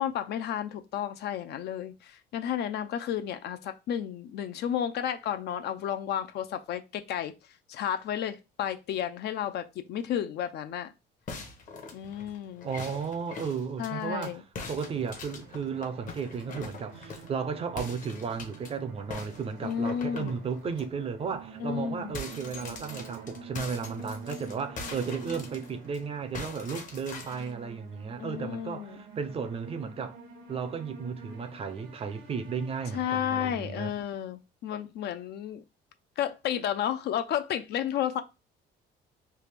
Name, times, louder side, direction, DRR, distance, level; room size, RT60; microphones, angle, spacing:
voice 1, 0.0-7.3 7.7-10.9 11.9-12.7 13.8-14.4 19.6-20.4 21.6-22.2 28.2-29.0 32.9-35.6 36.2-38.2, left 9 dB, 60° left, 0.4 m, -32 dB
sound 1, 11.3-14.3 14.6-17.4 17.8-18.7 19.1-20.9 21.3-21.4 21.7-26.0 26.3-27.5, left 4 dB, 45° left, 0.8 m, -43 dB
voice 2, 12.6-14.4 14.7-30.2 30.5-33.9, right 6 dB, 30° right, 0.5 m, -34 dB
sound 2, 15.3-34.0, right 4 dB, 80° right, 0.9 m, -48 dB
3.3 x 2.4 x 3.3 m
cardioid pair, 140°, 19 cm